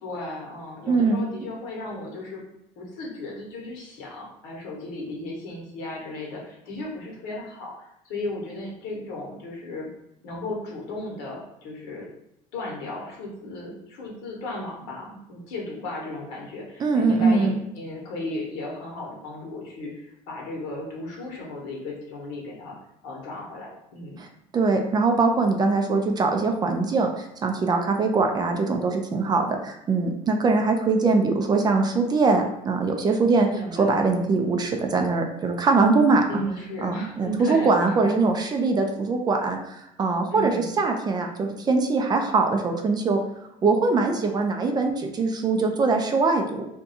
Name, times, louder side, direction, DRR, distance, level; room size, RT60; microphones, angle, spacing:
voice 1, 0.0-2.4 2.8-9.9 10.2-12.1 12.5-22.8 23.0-24.2 33.5-34.0 36.3-38.2 40.3-40.8, left 1 dB, 80° left, -3 dB, 1.2 m, -35 dB
voice 2, 0.9-1.2 16.8-17.6 24.2-24.3 24.5-33.5 33.8-36.2 36.8-43.2 43.6-46.7, right 3 dB, 25° right, 4 dB, 0.4 m, -22 dB
2.6 x 2.3 x 4.0 m, 0.81 s
cardioid pair, 125°, 15 cm